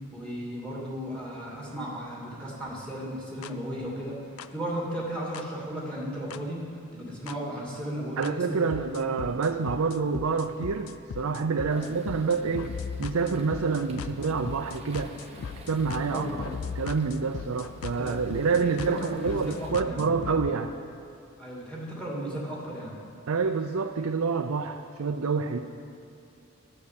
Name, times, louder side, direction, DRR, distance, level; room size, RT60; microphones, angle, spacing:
voice 1, 0.1-4.2 4.5-6.6 6.9-8.8 11.7-11.9 16.1-16.5 17.2-17.5 18.0-18.2 18.7-20.0 21.4-23.0 25.5-25.6, right 1 dB, 5° left, -4 dB, 2.5 m, -35 dB
sound 1, 3.4-3.5 4.4-4.5 5.3-5.4 6.3-6.4 7.3-7.4 8.2-8.3 8.7-20.5, left 6 dB, 75° left, 0.4 m, -39 dB
voice 2, 8.2-12.7 13.0-15.1 15.7-16.4 16.8-20.7 23.3-25.6, right 5 dB, 80° right, 5 dB, 0.5 m, -27 dB
sound 2, 11.7-19.7, right 2 dB, 30° right, 1.2 m, -51 dB
12.0 x 6.7 x 8.4 m, 2.6 s
head